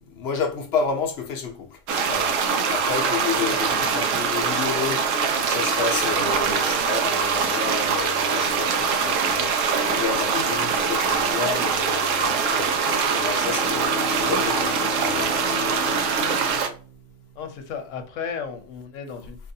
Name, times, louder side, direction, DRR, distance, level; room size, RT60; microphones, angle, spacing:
voice 1, 0.0-1.8 2.1-12.8 13.1-13.9 14.2-15.3 15.6-15.7, left 5 dB, 60° left, 0.9 m, -31 dB
sound 1, 1.9-16.7, right 5 dB, 90° right, 1.0 m, -23 dB
voice 2, 3.4-3.9 17.4-19.4, left 6 dB, 85° left, 1.1 m, -34 dB
Bowed string instrument, 13.3-17.9, left 3 dB, 60° right, 1.3 m, -35 dB
4.6 x 2.5 x 2.6 m
omnidirectional pair, 1.3 m